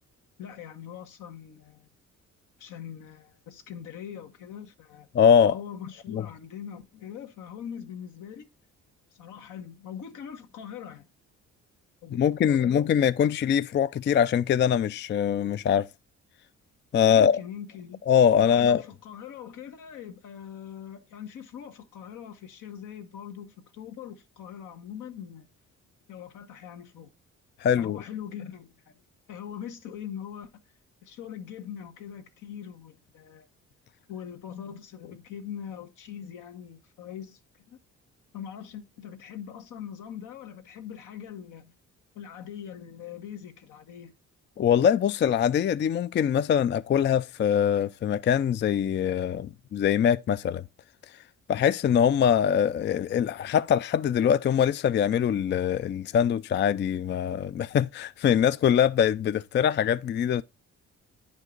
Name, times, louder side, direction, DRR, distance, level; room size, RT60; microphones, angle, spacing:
voice 1, 0.4-1.9 2.6-5.1 5.5-8.5 9.1-11.0 12.0-12.9 17.1-18.0 18.4-25.5 26.1-27.1 27.7-29.0 29.3-30.6 31.0-33.5 34.1-37.4 37.7-37.8 38.3-41.7 42.1-44.1, left 9 dB, 85° left, 1.6 m, -42 dB
voice 2, 5.1-5.6 6.1-6.2 12.1-15.9 16.9-17.4 18.1-18.8 27.6-28.0 44.6-50.6 51.5-60.4, left 8 dB, 40° left, 0.4 m, -23 dB
9.7 x 5.3 x 3.8 m
cardioid pair, 90°, 30 cm